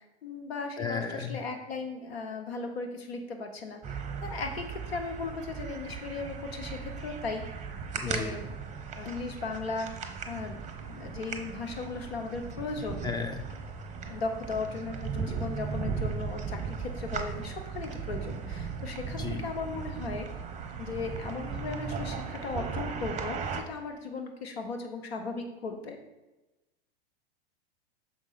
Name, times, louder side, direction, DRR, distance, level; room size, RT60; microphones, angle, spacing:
voice 1, 0.0-7.4 8.0-8.5 8.9-13.1 14.1-20.3 20.8-26.0, left 3 dB, 75° left, 5 dB, 1.0 m, -37 dB
voice 2, 0.8-1.4 8.0-8.3 13.0-13.4 19.2-19.4, left 5 dB, 15° left, 6 dB, 0.4 m, -34 dB
sound 1, 3.8-23.6, right 5 dB, 20° right, 0.7 m, -37 dB
6.2 x 4.8 x 4.1 m, 1.1 s
hypercardioid pair, 95°, 32 cm